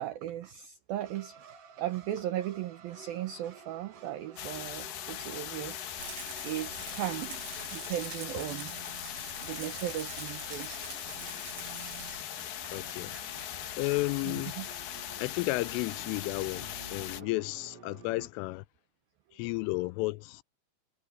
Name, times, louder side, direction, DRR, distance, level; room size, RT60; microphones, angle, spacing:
voice 1, 0.0-1.4 1.8-6.0 6.4-7.4 7.7-8.7 9.4-10.7 14.2-14.7, right 12 dB, 90° right, 2.0 m, -37 dB
sound 1, 1.0-18.3, right 7 dB, 55° right, 1.8 m, -52 dB
sound 2, 4.4-17.2, left 12 dB, 70° left, 2.2 m, -40 dB
Rattle, 6.0-12.2, right 8 dB, 70° right, 5.2 m, -46 dB
voice 2, 12.7-13.2 13.8-14.6 15.2-18.6 19.3-20.4, left 23 dB, 90° left, 3.1 m, -33 dB
omnidirectional pair, 5.6 m